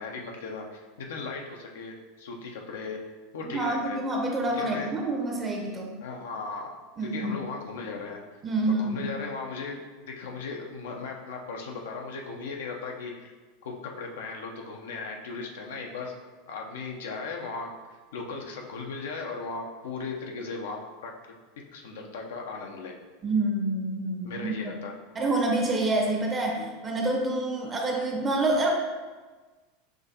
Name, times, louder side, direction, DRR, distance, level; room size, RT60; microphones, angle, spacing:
voice 1, 0.0-3.0 3.3-4.0 4.6-4.9 6.0-6.7 7.0-8.2 8.7-9.8 10.1-13.3 13.6-16.1 16.5-17.7 18.1-21.1 21.7-23.0 24.2-24.9, left 4 dB, 70° left, 0 dB, 0.6 m, -37 dB
voice 2, 3.5-5.9 7.0-7.3 8.4-9.1 23.2-24.6 25.1-28.7, right 2 dB, 25° right, 1 dB, 0.9 m, -27 dB
6.0 x 2.6 x 2.8 m, 1.3 s
hypercardioid pair, 85°, 0 cm